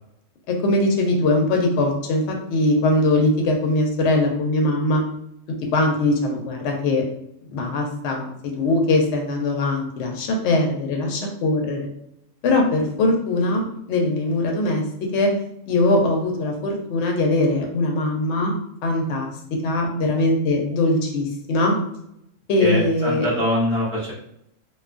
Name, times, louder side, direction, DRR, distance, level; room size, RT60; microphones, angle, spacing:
voice 1, 0.5-5.0 5.7-7.0 7.5-11.9 12.4-15.3 15.7-18.5 18.8-21.7 22.5-23.3, left 2 dB, 70° left, 1 dB, 0.8 m, -21 dB
voice 2, 22.6-24.1, equal, 15° left, -8 dB, 0.5 m, -23 dB
2.5 x 2.2 x 2.4 m, 0.77 s
omnidirectional pair, 1.3 m